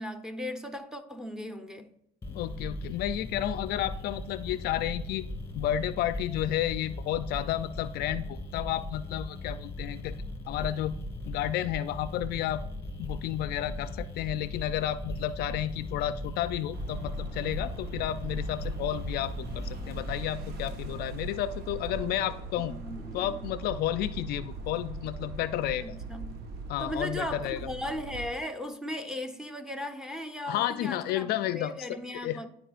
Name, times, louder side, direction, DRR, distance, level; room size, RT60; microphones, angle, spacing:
voice 1, 0.0-1.9 22.5-23.4 25.8-26.5 26.8-32.5, left 1 dB, 5° right, 0.9 m, -37 dB
sound 1, 2.2-20.2, left 1 dB, 15° left, 2.1 m, -38 dB
voice 2, 2.3-5.3 5.5-10.1 10.5-10.9 11.3-12.6 13.0-22.7 23.1-25.9 26.7-27.6 30.5-32.4, left 12 dB, 65° left, 0.4 m, -31 dB
sound 2, 16.7-28.3, right 2 dB, 65° right, 1.3 m, -40 dB
12.5 x 4.9 x 2.5 m
supercardioid pair, 90°, 18 cm